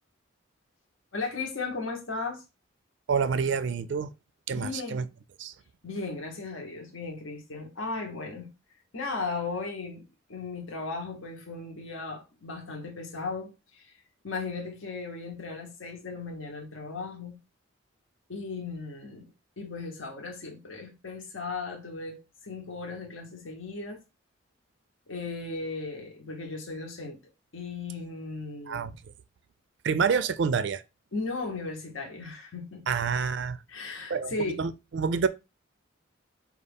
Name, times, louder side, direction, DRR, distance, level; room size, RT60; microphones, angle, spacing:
voice 1, 1.1-2.4 4.5-5.1 5.8-8.5 8.9-14.0 14.2-17.4 18.3-19.3 19.6-24.0 25.1-27.2 27.5-28.9 31.1-32.9 33.7-34.6, left 3 dB, 75° left, 0.9 m, -36 dB
voice 2, 3.1-4.1 4.5-5.1 5.4-5.5 28.7-28.9 29.8-30.8 32.9-33.6 34.1-35.3, right 6 dB, 60° right, 0.3 m, -28 dB
5.1 x 2.4 x 3.4 m
head